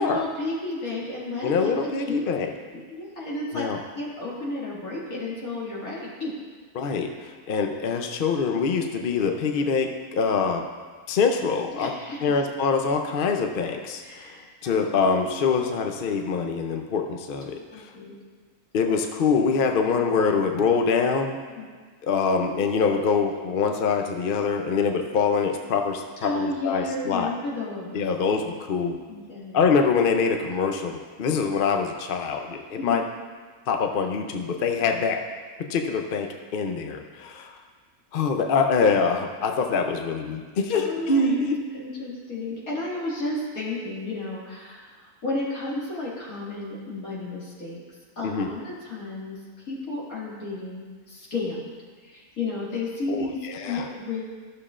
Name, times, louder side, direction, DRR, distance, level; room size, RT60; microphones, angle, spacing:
voice 1, 0.0-2.3 2.9-3.7 3.9-6.4 11.7-12.2 14.0-14.8 17.7-18.1 21.6-21.7 26.2-28.1 29.1-29.7 32.8-33.0 40.7-41.5 41.7-44.9 45.2-47.8 48.2-51.7 52.0-54.3, left 2 dB, 80° left, -6 dB, 2.6 m, -32 dB
voice 2, 1.4-2.5 3.5-3.8 6.8-10.6 11.1-11.9 12.2-14.0 14.6-17.8 18.7-21.4 22.0-27.3 27.9-29.0 29.5-33.0 33.7-35.2 35.7-37.5 38.1-41.6 48.2-48.5 53.1-53.8, left 5 dB, 55° left, 4 dB, 0.6 m, -24 dB
13.5 x 6.7 x 2.5 m, 1.5 s
omnidirectional pair, 1.5 m